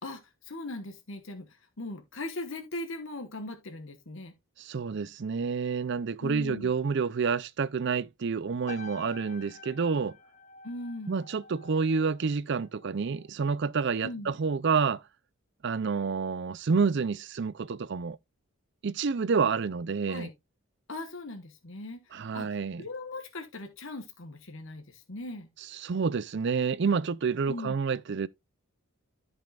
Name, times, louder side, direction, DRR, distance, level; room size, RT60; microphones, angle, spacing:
voice 1, 0.0-4.3 6.2-6.7 10.6-11.2 14.0-14.3 20.1-20.3 20.9-25.5 27.5-27.7, left 2 dB, 65° left, 1.2 m, -39 dB
voice 2, 4.6-10.2 11.1-15.0 15.6-18.2 18.8-20.3 22.1-22.8 25.7-28.3, right 5 dB, 55° right, 0.5 m, -29 dB
sound 1, 8.7-13.3 13.6-14.0, left 3 dB, 35° left, 0.7 m, -49 dB
13.5 x 5.4 x 2.4 m
head